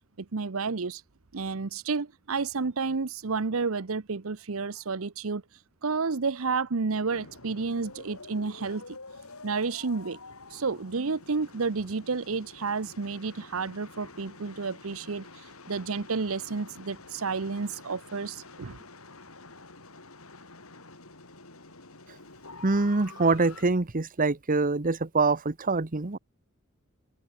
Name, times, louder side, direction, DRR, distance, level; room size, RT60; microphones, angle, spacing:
voice 1, 0.2-1.0 1.3-5.4 5.8-9.0 9.4-10.2 10.5-18.8, right 4 dB, 70° right, 0.8 m, -31 dB
sound 1, 7.1-23.6, left 3 dB, 90° left, 7.2 m, -48 dB
voice 2, 22.6-26.2, right 3 dB, 40° right, 1.1 m, -25 dB
open air
head